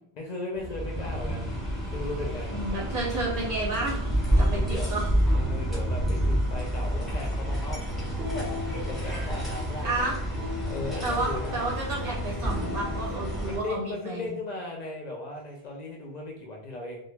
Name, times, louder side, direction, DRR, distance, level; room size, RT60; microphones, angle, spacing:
voice 1, 0.1-1.5 1.9-2.5 4.4-4.9 5.3-10.1 10.7-11.7 13.5-17.0, left 2 dB, 55° left, 0 dB, 0.5 m, -37 dB
sound 1, 0.5-13.6, equal, ahead, 0.6 m, -29 dB
sound 2, 1.5-13.6, left 1 dB, 35° right, 0.7 m, -44 dB
voice 2, 2.5-4.0 4.4-5.2 9.8-10.2 11.0-14.4, right 2 dB, 70° right, -3 dB, 0.8 m, -31 dB
sound 3, 7.9-14.0, left 3 dB, 90° right, 1.0 m, -39 dB
2.2 x 2.2 x 3.1 m, 0.75 s
omnidirectional pair, 1.0 m